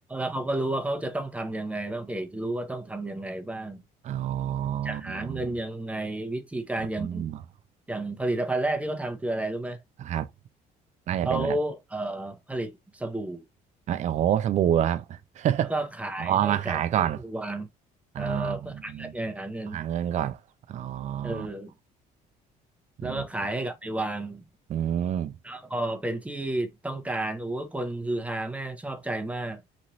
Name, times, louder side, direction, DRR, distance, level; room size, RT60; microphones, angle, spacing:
voice 1, 0.1-3.8 4.8-7.3 7.9-9.8 11.2-13.4 15.7-17.7 18.2-19.8 21.2-21.7 23.0-24.4 25.4-29.6, right 1 dB, 10° right, 0.7 m, -31 dB
voice 2, 4.0-5.5 7.0-7.4 10.0-10.3 11.1-11.6 13.9-15.7 16.2-17.2 18.1-19.1 19.7-20.4 20.7-21.5 23.0-23.2 24.7-25.3, right 10 dB, 45° right, 0.4 m, -28 dB
3.0 x 2.5 x 2.7 m
cardioid pair, 110°, 17 cm